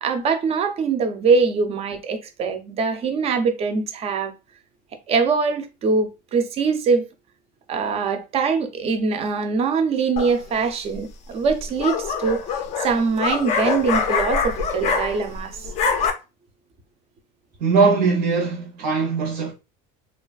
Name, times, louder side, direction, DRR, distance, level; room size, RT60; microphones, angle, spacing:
voice 1, 0.0-4.3 5.1-7.1 7.7-15.7, right 5 dB, 30° right, 0.4 m, -23 dB
sound 1, 10.2-10.6 11.5-15.4 15.6-16.1, left 5 dB, 35° left, 0.4 m, -24 dB
voice 2, 17.6-19.5, right 4 dB, 75° right, 0.8 m, -20 dB
2.8 x 2.3 x 2.3 m
cardioid pair, 155°, 21 cm